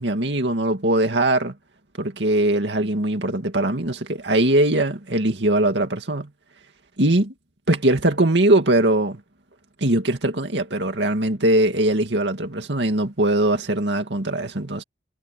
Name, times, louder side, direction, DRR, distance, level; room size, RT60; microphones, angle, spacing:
voice 1, 0.0-1.5 2.0-6.3 7.0-7.3 7.7-9.2 9.8-14.8, right 1 dB, 80° right, 2.2 m, -21 dB
head